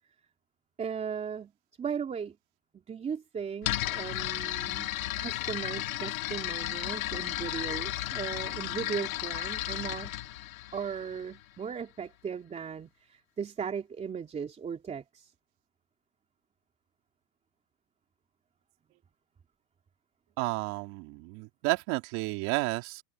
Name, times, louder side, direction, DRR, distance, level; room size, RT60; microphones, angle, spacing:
voice 1, 0.8-1.5 1.8-2.4 2.7-4.9 5.2-10.2 10.7-15.3, right 7 dB, 15° right, 3.2 m, -37 dB
sound 1, 3.6-11.4, left 15 dB, 90° left, 2.1 m, -34 dB
voice 2, 20.4-23.0, right 24 dB, 50° right, 2.7 m, -31 dB
supercardioid pair, 150°, 39 cm